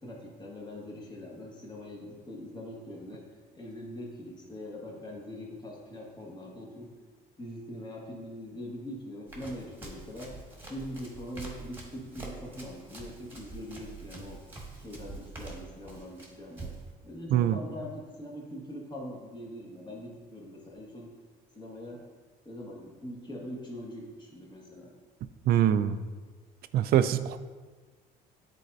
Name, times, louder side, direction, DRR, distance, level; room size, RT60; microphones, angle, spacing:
voice 1, 0.0-3.2 3.5-6.9 7.4-10.3 10.7-14.4 14.8-16.7 17.0-21.1 21.5-22.0 22.4-24.9, equal, 25° left, -3 dB, 1.6 m, -42 dB
Run, 9.3-16.9, right 3 dB, 10° right, 1.5 m, -45 dB
voice 2, 25.5-26.0 26.7-27.4, right 10 dB, 65° right, 12 dB, 0.4 m, -23 dB
9.5 x 4.2 x 2.7 m, 1.4 s
cardioid pair, 110°, 17 cm